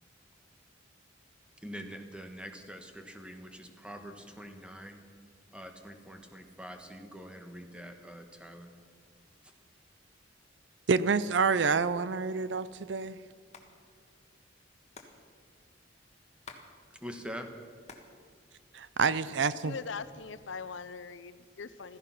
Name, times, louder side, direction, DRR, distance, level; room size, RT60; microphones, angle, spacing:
voice 1, 1.6-5.0 5.5-8.7 17.0-17.5, equal, 5° right, 5 dB, 1.3 m, -44 dB
voice 2, 10.9-13.2 18.7-19.7, right 5 dB, 65° right, 16 dB, 0.5 m, -28 dB
Hands, 13.5-13.7 13.9-14.0 14.2-16.7 17.0-18.1 18.5-19.3 19.8-20.4, left 4 dB, 35° left, 1.5 m, -52 dB
voice 3, 19.6-22.0, left 5 dB, 80° left, 14 dB, 0.7 m, -41 dB
16.0 x 14.5 x 5.8 m, 2.1 s
head